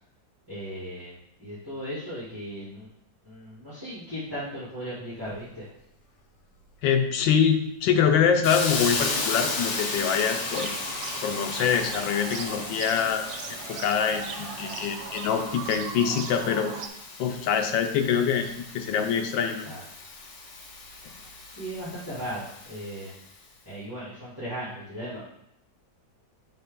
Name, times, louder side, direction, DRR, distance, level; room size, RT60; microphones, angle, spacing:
voice 1, 0.5-1.1 1.4-2.9 3.2-5.7 19.6-19.8 21.6-23.1 23.7-25.2, equal, 10° right, -10 dB, 2.2 m, -37 dB
voice 2, 6.8-10.7 11.2-13.2 13.7-16.7 17.2-19.7, left 7 dB, 90° left, 6 dB, 1.4 m, -25 dB
Hiss, 8.4-23.2, left 3 dB, 70° left, 1.6 m, -35 dB
sound 1, 10.2-16.9, right 6 dB, 85° right, 1.3 m, -39 dB
6.5 x 4.2 x 3.6 m, 0.79 s
omnidirectional pair, 2.0 m